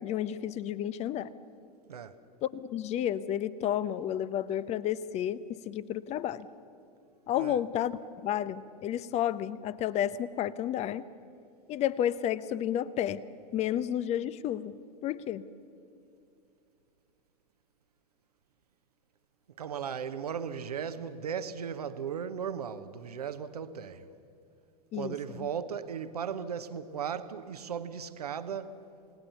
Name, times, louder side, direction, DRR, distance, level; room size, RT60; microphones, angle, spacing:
voice 1, 0.0-1.3 2.4-6.5 7.3-11.0 11.7-13.2 13.5-14.7 15.0-15.4 24.9-25.5, left 11 dB, 35° left, 0.8 m, -31 dB
voice 2, 19.6-24.1 24.9-28.8, right 7 dB, 70° right, 1.0 m, -36 dB
28.5 x 18.5 x 6.9 m
figure-of-eight pair, 85°, 20 cm